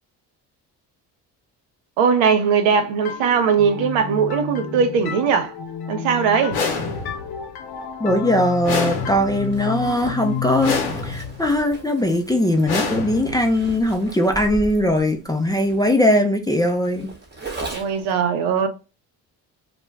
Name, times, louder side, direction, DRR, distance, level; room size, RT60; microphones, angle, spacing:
voice 1, 2.0-5.5 5.9-6.6 17.7-18.7, right 6 dB, 85° right, 0.6 m, -19 dB
sound 1, 3.1-12.6, left 7 dB, 55° left, 0.7 m, -32 dB
sound 2, 6.5-7.4 8.6-9.6 10.6-11.4 12.6-13.6, left 4 dB, 85° left, 0.9 m, -27 dB
voice 2, 8.0-10.7 11.0-17.1, left 1 dB, 10° left, 0.3 m, -20 dB
Zipper (clothing), 9.4-18.1, right 2 dB, 25° right, 0.9 m, -38 dB
2.4 x 2.2 x 3.0 m
supercardioid pair, 60°, 46 cm